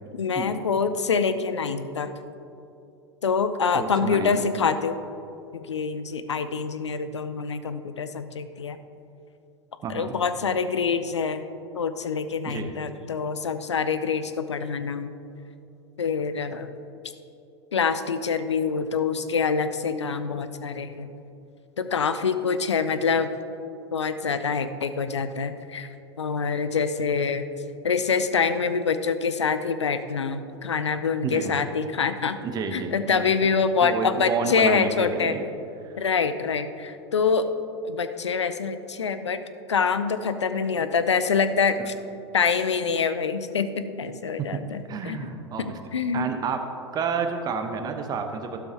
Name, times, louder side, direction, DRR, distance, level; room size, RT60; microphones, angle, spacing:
voice 1, 0.1-2.1 3.2-5.0 5.5-8.8 9.9-11.5 11.7-15.1 16.0-16.7 17.7-21.1 21.8-23.3 23.9-25.9 26.2-27.5 27.8-32.4 32.7-35.3 36.0-37.5 37.8-39.4 39.7-41.9 42.3-45.2 45.6-46.3, left 5 dB, 80° left, 11 dB, 0.6 m, -25 dB
voice 2, 3.7-4.4 9.8-10.2 12.4-12.7 31.2-31.5 32.4-33.3 33.8-35.5 41.8-41.9 44.9-45.8 46.1-46.6 46.9-48.6, right 5 dB, 25° right, 6 dB, 0.9 m, -30 dB
12.5 x 12.0 x 2.8 m, 2.8 s
figure-of-eight pair, 85°, 15 cm